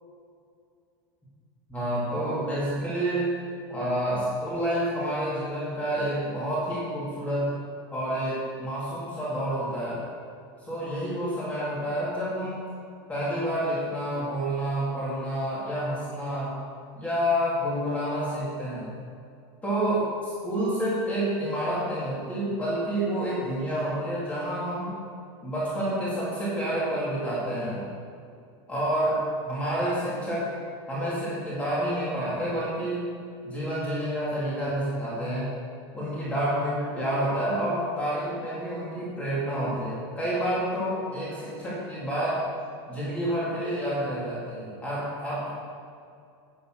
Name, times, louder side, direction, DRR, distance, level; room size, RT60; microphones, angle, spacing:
voice 1, 1.7-3.3 3.7-7.6 7.9-10.0 10.6-12.7 13.1-16.6 17.0-19.0 19.6-24.9 25.4-27.9 28.7-30.5 30.9-33.1 33.4-35.5 35.9-42.4 42.9-45.5, right 1 dB, 10° left, -8 dB, 2.4 m, -29 dB
10.0 x 7.2 x 6.3 m, 2.4 s
supercardioid pair, 170°, 14 cm